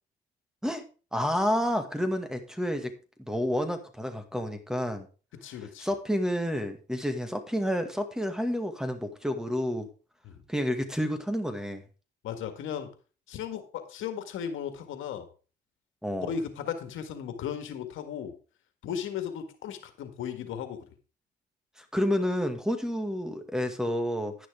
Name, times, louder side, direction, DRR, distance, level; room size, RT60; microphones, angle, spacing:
voice 1, 1.1-2.9 3.3-5.1 5.8-9.9 10.5-11.8 16.0-16.3 21.8-24.5, equal, 5° right, 7 dB, 2.0 m, -29 dB
voice 2, 5.4-5.9 10.2-10.4 12.2-12.9 13.3-15.3 16.2-18.3 18.8-20.9, left 8 dB, 85° left, 8 dB, 1.7 m, -36 dB
11.0 x 10.5 x 3.6 m, 0.35 s
cardioid pair, 90°, 20 cm